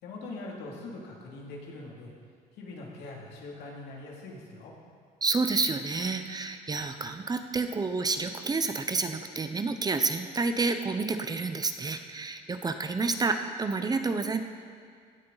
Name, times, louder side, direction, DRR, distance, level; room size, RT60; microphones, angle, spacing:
voice 1, 0.0-2.1 2.6-4.7, left 2 dB, 80° left, -2 dB, 2.7 m, -42 dB
voice 2, 5.2-14.4, right 3 dB, 25° right, 8 dB, 0.7 m, -29 dB
17.0 x 9.7 x 4.0 m, 2.1 s
cardioid pair, 110°, 17 cm